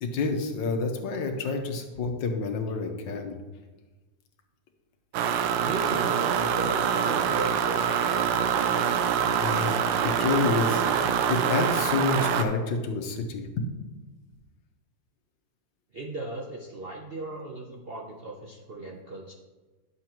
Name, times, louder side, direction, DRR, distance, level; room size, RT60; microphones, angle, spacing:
voice 1, 0.0-3.4 9.3-13.7, left 4 dB, 80° left, 5 dB, 1.6 m, -29 dB
sound 1, 5.1-12.4, right 8 dB, 90° right, 1.4 m, -25 dB
voice 2, 5.6-9.0 15.9-19.3, right 2 dB, 60° right, 0 dB, 0.6 m, -37 dB
11.0 x 6.8 x 3.0 m, 1.2 s
omnidirectional pair, 2.0 m